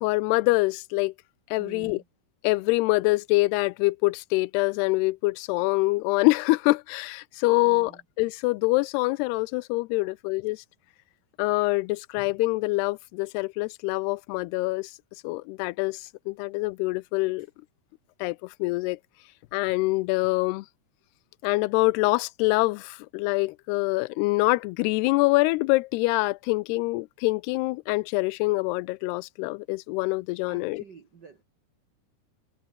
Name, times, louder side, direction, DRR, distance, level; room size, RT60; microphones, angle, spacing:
voice 1, 0.0-1.1 1.5-2.0 2.4-10.6 11.4-14.9 15.2-17.5 18.2-19.0 19.5-20.7 21.4-30.8, left 23 dB, 90° left, 2.6 m, -25 dB
voice 2, 1.6-2.0 7.6-8.0 10.0-10.1 30.5-31.4, right 6 dB, 70° right, 1.0 m, -48 dB
omnidirectional pair, 4.6 m